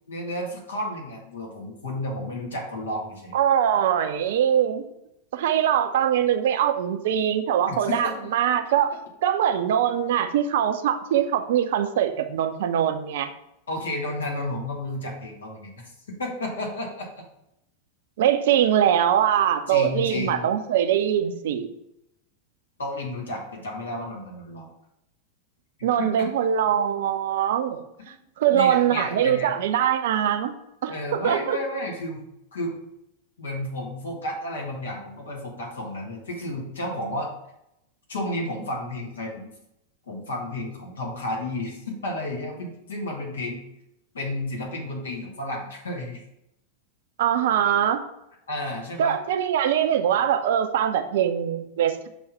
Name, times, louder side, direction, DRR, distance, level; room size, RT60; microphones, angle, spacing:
voice 1, 0.1-3.4 7.7-8.1 13.7-15.7 16.2-17.1 19.7-20.4 22.8-24.7 26.0-26.3 28.5-29.5 30.9-32.2 32.5-32.7 33.4-37.3 38.1-39.5 40.1-43.6 44.1-46.2 48.5-49.2, left 1 dB, 70° left, -1 dB, 1.5 m, -32 dB
voice 2, 3.3-4.8 5.3-8.9 9.2-13.3 18.2-21.7 25.8-27.8 28.4-30.5 30.8-31.6 47.2-48.0 49.0-52.1, right 9 dB, 55° right, 8 dB, 0.5 m, -22 dB
6.1 x 3.1 x 5.5 m, 0.84 s
figure-of-eight pair, 90°, 0 cm